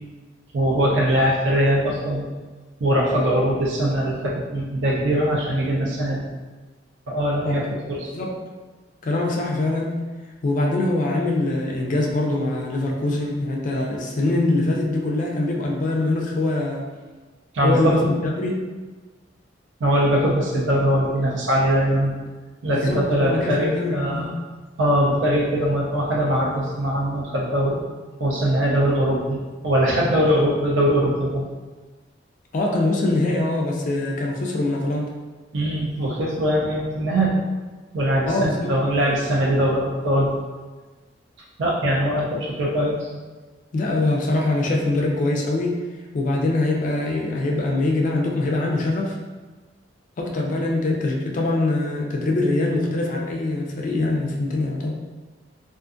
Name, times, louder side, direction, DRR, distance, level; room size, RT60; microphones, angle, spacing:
voice 1, 0.5-2.2 2.8-6.2 7.1-8.1 17.5-17.8 19.8-22.1 22.6-24.3 24.8-27.7 28.2-31.4 35.5-37.3 37.9-40.3 41.6-43.1, equal, 80° right, -4 dB, 0.5 m, -21 dB
voice 2, 7.4-7.8 8.1-8.4 9.0-10.0 10.4-16.8 17.6-18.6 22.7-24.4 32.5-35.1 38.3-38.7 43.7-45.8 46.1-49.1 50.2-55.0, left 2 dB, 45° left, -1 dB, 0.4 m, -23 dB
2.4 x 2.4 x 2.4 m, 1.3 s
head